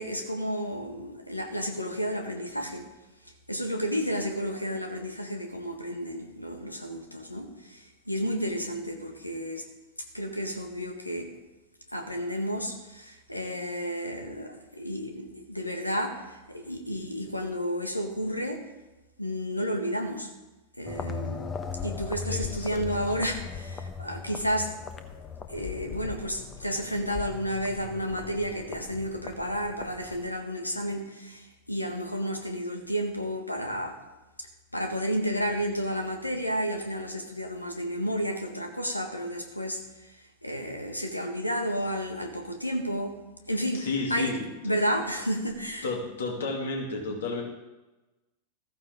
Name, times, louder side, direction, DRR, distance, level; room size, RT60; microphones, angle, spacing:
voice 1, 0.0-2.9 3.2-9.6 10.1-11.3 11.9-18.6 19.2-20.3 20.8-21.5 21.8-24.7 25.5-34.0 34.4-34.5 34.7-43.1 43.5-44.3 44.6-45.9, equal, 85° left, 4 dB, 1.7 m, -32 dB
sound 1, 20.9-30.3, left 5 dB, 25° left, 1.1 m, -38 dB
voice 2, 22.3-22.8 43.7-44.4 45.8-47.4, left 3 dB, 65° left, 0 dB, 2.9 m, -32 dB
14.5 x 14.5 x 3.8 m, 1.1 s
figure-of-eight pair, 90°, 0 cm